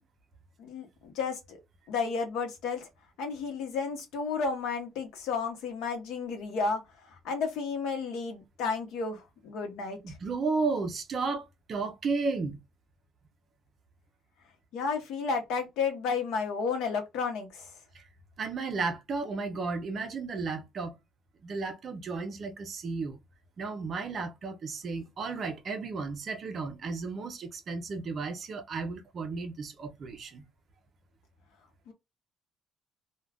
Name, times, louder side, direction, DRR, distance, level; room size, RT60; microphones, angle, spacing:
voice 1, 0.6-1.6 1.9-2.9 3.2-10.2 14.7-17.7 31.9-32.0, left 5 dB, 75° left, 0.8 m, -32 dB
voice 2, 10.0-12.6 17.9-18.0 18.4-21.0 21.4-23.2 23.6-30.4, right 4 dB, 35° right, 0.5 m, -33 dB
2.4 x 2.2 x 3.3 m
cardioid pair, 175°, 0 cm